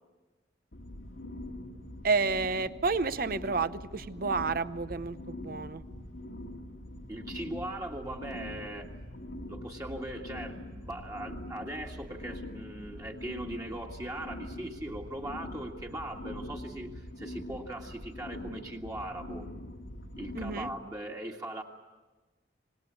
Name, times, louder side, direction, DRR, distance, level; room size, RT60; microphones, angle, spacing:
sound 1, 0.7-20.7, left 1 dB, 85° left, 2.1 m, -43 dB
voice 1, 2.0-5.8 20.3-20.7, right 4 dB, 50° right, 13 dB, 0.8 m, -30 dB
voice 2, 7.1-8.9 9.5-19.5 20.2-21.6, right 1 dB, 20° right, -1 dB, 1.8 m, -40 dB
26.5 x 19.5 x 8.4 m, 1.2 s
head